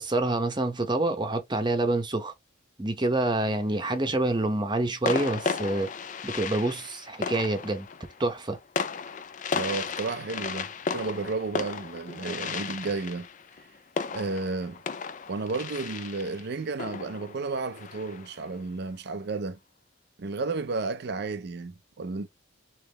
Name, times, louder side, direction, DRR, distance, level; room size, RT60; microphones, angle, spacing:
voice 1, 0.0-2.3 2.8-5.9 6.2-7.9 8.2-8.6, right 2 dB, 20° right, 0.8 m, -27 dB
sound 1, 3.8-4.1 5.0-18.5, left 5 dB, 40° left, 0.3 m, -35 dB
voice 2, 9.5-13.3 14.1-14.8 15.3-19.6 20.2-22.3, right 3 dB, 55° right, 0.5 m, -32 dB
3.5 x 3.1 x 3.2 m
head